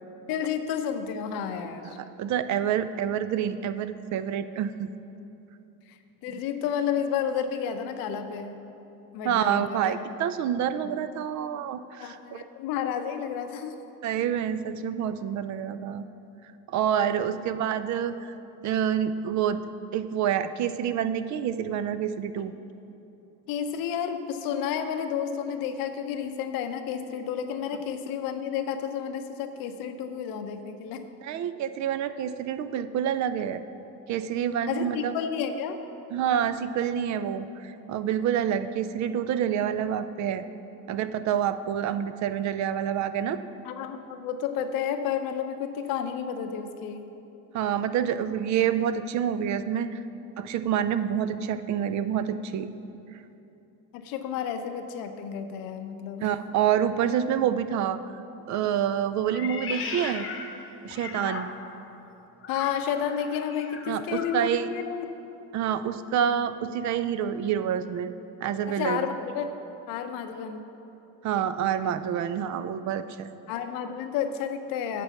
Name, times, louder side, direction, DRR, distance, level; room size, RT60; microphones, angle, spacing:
voice 1, 0.3-2.0 5.9-8.6 9.1-9.9 12.0-13.8 17.3-17.4 23.5-31.1 34.7-35.8 43.6-47.0 53.9-56.2 62.5-65.1 68.7-69.5 69.9-70.6 73.5-75.0, left 8 dB, 85° left, 8 dB, 0.7 m, -31 dB
voice 2, 1.9-4.9 9.2-12.4 14.0-16.1 16.7-18.3 18.6-19.6 19.9-22.5 31.2-33.6 34.1-35.1 36.1-40.4 40.9-43.4 47.5-50.0 50.4-52.7 56.2-58.0 58.5-60.3 60.8-61.5 63.9-64.7 65.5-68.1 68.4-69.1 71.2-73.3, right 9 dB, 55° right, 12 dB, 0.4 m, -27 dB
Meow, 59.3-61.8 62.4-64.5, left 5 dB, 40° left, 0.8 m, -38 dB
8.3 x 4.5 x 7.0 m, 2.9 s
cardioid pair, 100°, 34 cm